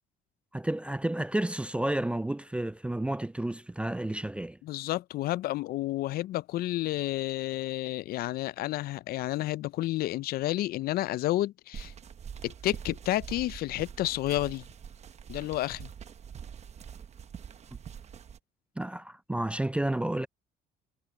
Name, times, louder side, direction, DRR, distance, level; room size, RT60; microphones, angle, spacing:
voice 1, 0.5-4.6 18.8-20.3, right 1 dB, 5° right, 0.3 m, -31 dB
voice 2, 4.6-11.9 12.4-14.6 15.3-15.9, left 15 dB, 65° left, 0.4 m, -30 dB
sound 1, 11.7-18.4, right 7 dB, 40° right, 1.0 m, -45 dB
cardioid pair, 110°, 17 cm